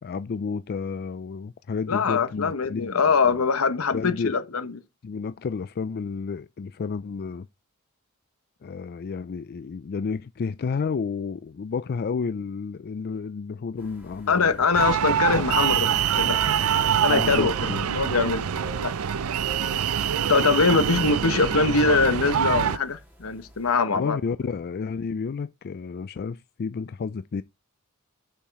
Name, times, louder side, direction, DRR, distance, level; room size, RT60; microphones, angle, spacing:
voice 1, 0.0-2.9 3.2-3.4 3.9-4.4 5.0-7.5 8.6-14.6 17.1-18.1 23.9-27.4, left 5 dB, 45° left, 0.4 m, -31 dB
voice 2, 1.9-4.7 14.3-16.4 17.0-17.5 17.9-18.9 20.3-24.2, left 4 dB, 80° left, 1.1 m, -23 dB
sound 1, 13.8-23.8, left 1 dB, 10° right, 3.3 m, -48 dB
sound 2, 14.7-22.8, right 8 dB, 90° right, 0.5 m, -25 dB
7.1 x 5.7 x 4.7 m
head